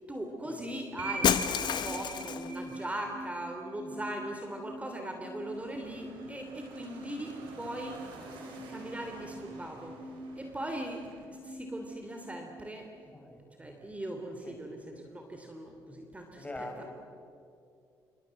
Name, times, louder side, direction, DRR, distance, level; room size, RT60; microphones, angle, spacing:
voice 1, 0.1-1.3 1.6-8.0 8.5-9.9 10.4-12.9 13.6-16.9, right 1 dB, 15° right, 3 dB, 3.3 m, -40 dB
sound 1, 1.0-13.0, right 2 dB, 60° right, 6.5 m, -44 dB
Shatter, 1.2-2.6, left 9 dB, 65° left, 1.2 m, -29 dB
sound 2, 5.5-11.2, right 3 dB, 85° right, 5.4 m, -51 dB
voice 2, 13.1-13.4 14.4-14.6 16.3-16.9, left 1 dB, 15° left, 4 dB, 5.7 m, -42 dB
27.0 x 24.5 x 7.8 m, 2.5 s
supercardioid pair, 75°, 8 cm